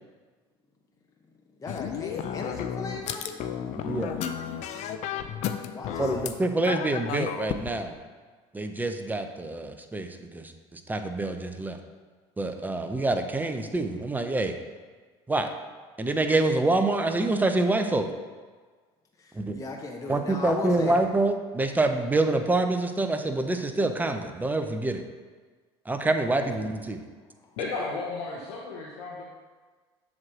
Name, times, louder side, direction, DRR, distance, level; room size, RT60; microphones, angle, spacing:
voice 1, 1.6-6.3 19.2-21.0 26.4-26.5, left 3 dB, 25° left, 1 dB, 0.8 m, -38 dB
sound 1, 1.7-6.4 6.7-7.7, left 9 dB, 60° left, 0.5 m, -33 dB
voice 2, 3.9-4.2 6.0-7.9 8.5-11.8 12.4-14.5 15.3-15.5 16.0-18.1 19.3-19.6 20.1-25.0 25.9-27.0, right 2 dB, 15° right, 7 dB, 0.7 m, -26 dB
voice 3, 27.6-29.2, left 3 dB, 85° left, -4 dB, 1.0 m, -33 dB
7.4 x 3.2 x 6.1 m, 1.4 s
supercardioid pair, 85°, 14 cm